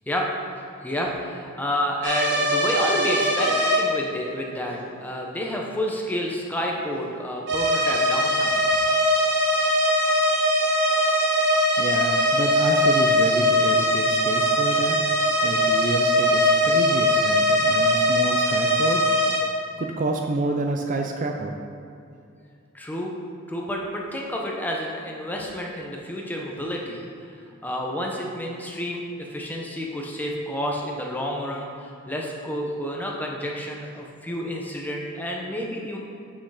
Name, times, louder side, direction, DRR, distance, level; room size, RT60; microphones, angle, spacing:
voice 1, 0.8-8.6 22.7-23.1 23.5-27.1 27.6-29.0 29.3-36.0, equal, 10° left, -1 dB, 0.8 m, -29 dB
sound 1, 2.0-3.8 7.5-19.4, equal, 55° right, 1.2 m, -21 dB
voice 2, 11.8-15.0 15.4-19.0 19.8-21.5, right 2 dB, 35° right, 3 dB, 0.4 m, -28 dB
6.3 x 6.2 x 4.9 m, 2.5 s
head